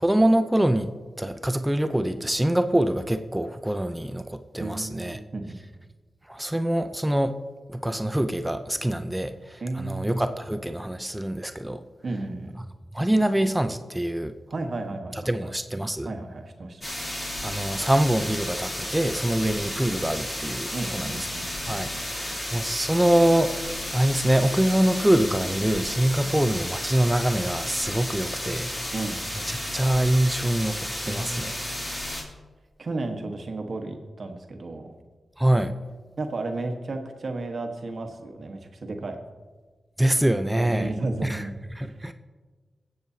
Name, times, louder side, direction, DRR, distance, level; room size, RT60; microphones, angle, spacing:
voice 1, 0.0-5.2 6.3-7.4 7.7-11.8 12.9-14.3 15.1-16.1 17.4-21.2 21.7-28.7 29.5-31.6 35.4-35.7 40.0-40.9 41.2-42.1, right 1 dB, 10° right, 9 dB, 0.5 m, -25 dB
voice 2, 4.6-5.6 9.6-10.1 12.0-12.5 14.5-15.5 16.0-16.8 20.7-21.4 21.9-22.4 26.2-26.3 28.1-29.2 31.0-31.7 32.8-34.9 36.2-39.2 40.5-41.9, right 2 dB, 60° right, 4 dB, 1.2 m, -33 dB
sound 1, 16.8-32.2, left 1 dB, 30° left, 3.1 m, -33 dB
22.5 x 7.8 x 2.8 m, 1.4 s
cardioid pair, 65°, 0 cm